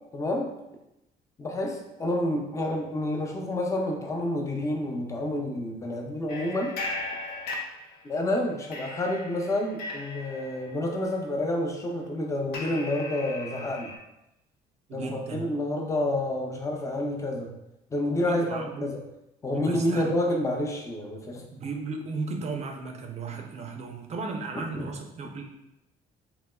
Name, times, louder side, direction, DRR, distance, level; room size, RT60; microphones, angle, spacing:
voice 1, 0.1-0.5 1.4-6.7 8.0-13.9 14.9-17.5 17.9-19.0 19.4-21.5 24.5-24.9, left 1 dB, 20° left, 1 dB, 0.5 m, -29 dB
sound 1, 6.3-8.3 8.7-14.0, left 2 dB, 65° left, 0.6 m, -38 dB
voice 2, 14.9-15.4 18.3-18.9 19.5-20.2 21.5-25.4, right 4 dB, 40° right, 3 dB, 0.4 m, -35 dB
3.3 x 2.9 x 2.2 m, 0.89 s
cardioid pair, 110°, 17 cm